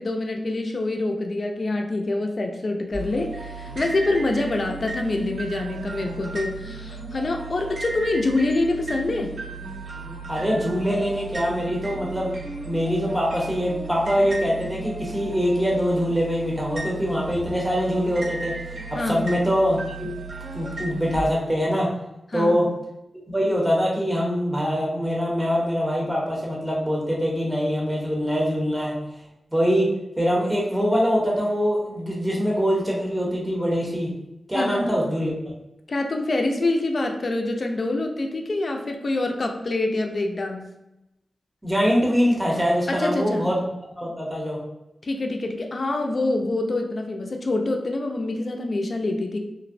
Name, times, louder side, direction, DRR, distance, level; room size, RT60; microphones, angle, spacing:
voice 1, 0.0-9.4 18.9-19.3 22.3-22.7 34.5-35.0 35.9-40.7 42.9-43.5 45.0-49.4, left 2 dB, 55° left, 3 dB, 0.3 m, -26 dB
sound 1, 2.9-21.2, right 3 dB, 75° right, 0.7 m, -35 dB
voice 2, 10.3-12.3 12.6-18.5 18.9-20.2 20.5-21.9 22.3-22.7 23.3-29.0 29.5-34.1 34.5-35.3 41.6-43.7 44.0-44.6, equal, 10° right, -3 dB, 0.6 m, -23 dB
2.4 x 2.0 x 2.5 m, 0.89 s
cardioid pair, 50°, 0 cm